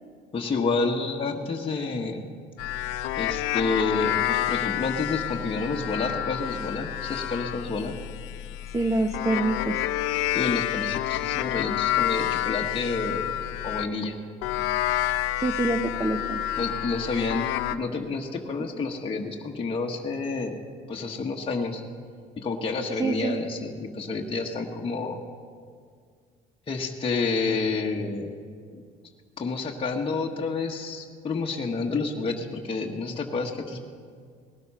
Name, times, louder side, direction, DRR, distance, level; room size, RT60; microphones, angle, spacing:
voice 1, 0.3-2.3 3.2-8.0 10.3-13.3 13.6-14.1 16.6-20.6 20.9-21.8 22.4-25.2 26.7-28.3 29.4-33.8, left 3 dB, 30° left, -1 dB, 1.3 m, -29 dB
sound 1, 2.6-13.9 14.4-17.8, left 13 dB, 85° left, 0.6 m, -29 dB
voice 2, 8.7-9.9 15.4-16.4 22.9-23.4, right 2 dB, 15° right, 5 dB, 0.8 m, -26 dB
19.0 x 12.0 x 5.6 m, 2.1 s
cardioid pair, 100°, 20 cm